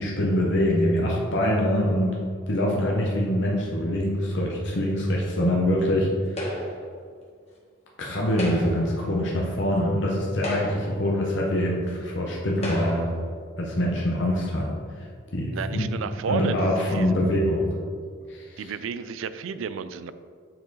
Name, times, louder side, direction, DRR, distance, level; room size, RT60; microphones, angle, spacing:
voice 1, 0.0-2.2 2.5-6.1 6.4-6.5 8.0-13.2 13.6-14.7 15.3-15.9 16.2-17.7 18.3-18.7, equal, 60° left, -3 dB, 0.9 m, -24 dB
sound 1, 6.4-6.9 8.2-8.9 9.8-9.9 10.3-11.0 11.9-12.0 12.6-13.1, equal, 30° left, 1.6 m, -32 dB
voice 2, 15.5-17.1 18.6-20.1, right 6 dB, 75° right, 13 dB, 0.3 m, -32 dB
7.5 x 4.7 x 4.0 m, 2.1 s
head